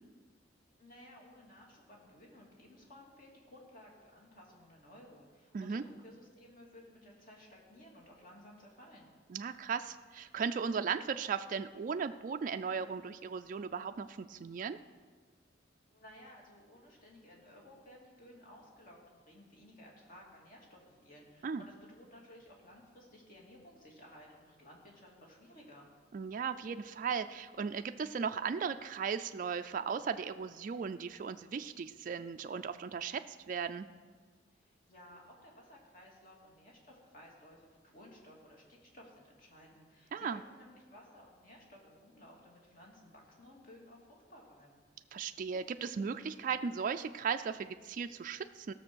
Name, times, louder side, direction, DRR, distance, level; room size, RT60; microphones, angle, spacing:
voice 1, 0.8-9.1 15.9-25.9 34.5-44.8, left 1 dB, 45° left, -2 dB, 2.7 m, -56 dB
voice 2, 9.3-14.8 21.4-21.6 26.1-33.9 40.1-40.4 45.1-48.7, right 6 dB, 45° right, 8 dB, 0.3 m, -37 dB
16.0 x 6.6 x 6.2 m, 1.5 s
head